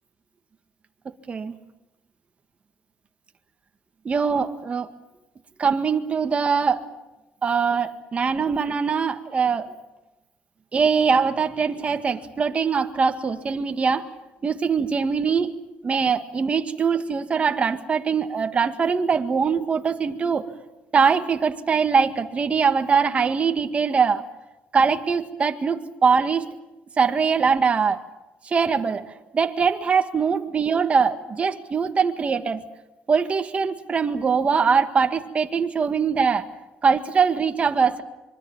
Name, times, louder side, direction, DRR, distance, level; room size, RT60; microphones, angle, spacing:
voice 1, 1.1-1.6 4.1-4.9 5.6-6.9 7.4-9.7 10.7-14.1 14.4-15.6 15.8-20.5 20.9-24.2 24.7-26.5 27.0-28.0 28.5-29.1 29.3-32.6 33.1-36.5 36.8-38.0, right 5 dB, 30° right, 6 dB, 1.9 m, -22 dB
25.0 x 24.0 x 7.4 m, 0.98 s
cardioid pair, 120°, 4 cm